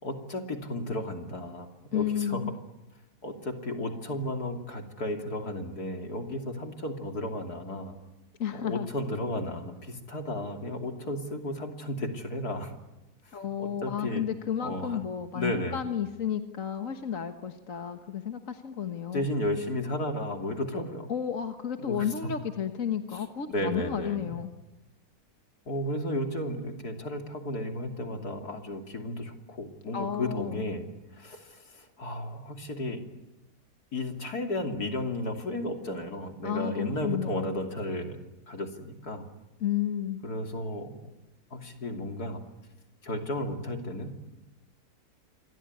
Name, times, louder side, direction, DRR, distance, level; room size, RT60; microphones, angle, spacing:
voice 1, 0.0-2.4 3.2-7.9 8.5-12.7 13.3-14.2 14.6-15.0 15.3-15.8 19.1-21.1 21.8-22.1 23.1-24.2 25.7-33.0 33.9-38.2 38.5-39.2 40.2-41.0 41.5-42.4 43.0-44.4, left 1 dB, 75° left, 4 dB, 3.4 m, -34 dB
voice 2, 1.9-2.5 8.4-8.9 13.3-19.3 21.1-24.5 29.9-30.6 36.4-37.5 39.6-40.2, left 9 dB, 55° left, 7 dB, 1.7 m, -32 dB
27.0 x 23.0 x 9.6 m, 0.99 s
omnidirectional pair, 1.7 m